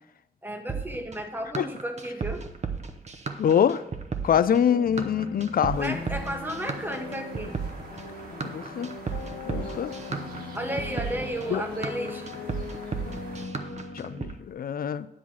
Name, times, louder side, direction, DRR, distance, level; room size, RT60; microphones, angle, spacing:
voice 1, 0.4-2.4 5.8-7.6 10.5-12.3, right 1 dB, 10° right, 5 dB, 1.0 m, -33 dB
sound 1, 0.7-14.3, right 5 dB, 40° right, 0.7 m, -34 dB
voice 2, 3.4-3.8 4.2-6.0 8.4-8.9 9.5-9.9 11.5-11.6 13.9-15.1, left 8 dB, 60° left, 16 dB, 0.4 m, -24 dB
sound 2, 4.7-14.2, left 4 dB, 80° left, 0.9 m, -40 dB
sound 3, 5.7-13.5, right 2 dB, 65° right, 1.8 m, -46 dB
10.0 x 4.7 x 7.1 m, 0.90 s
wide cardioid pair, 155°, 17 cm